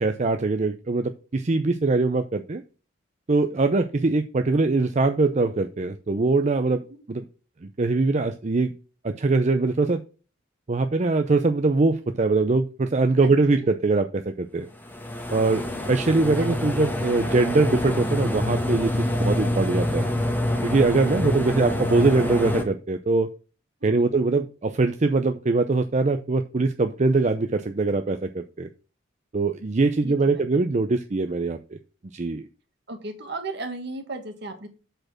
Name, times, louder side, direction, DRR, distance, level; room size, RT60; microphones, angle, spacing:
voice 1, 0.0-2.6 3.3-6.8 7.1-7.2 7.8-8.7 9.0-10.0 10.7-14.7 15.3-20.1 20.6-23.3 23.8-28.7 29.3-31.8 32.1-32.5, right 3 dB, 35° right, 8 dB, 0.5 m, -22 dB
voice 2, 13.2-13.7 16.4-16.6 21.4-21.6 23.8-24.1 30.0-30.5 32.9-34.7, right 2 dB, 60° right, 6 dB, 1.6 m, -36 dB
sound 1, 14.8-22.6, left 1 dB, 10° left, 1.2 m, -26 dB
7.8 x 4.4 x 6.0 m, 0.35 s
head